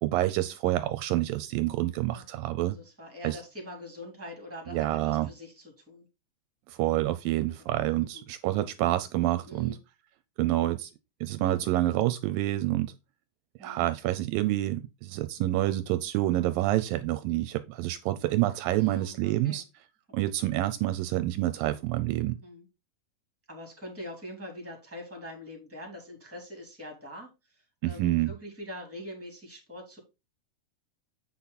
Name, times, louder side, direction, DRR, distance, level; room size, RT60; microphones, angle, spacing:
voice 1, 0.0-2.8 3.2-3.4 4.7-5.3 6.7-9.8 10.4-10.9 11.2-12.9 13.6-19.6 20.1-22.4 27.8-28.3, right 15 dB, 80° right, 2.2 m, -28 dB
voice 2, 2.1-6.1 7.6-7.7 8.1-8.3 9.5-9.8 13.6-13.9 18.8-19.6 22.4-22.7 23.5-27.3 27.8-30.0, equal, 5° right, 3.0 m, -43 dB
8.4 x 5.9 x 4.1 m
omnidirectional pair, 4.1 m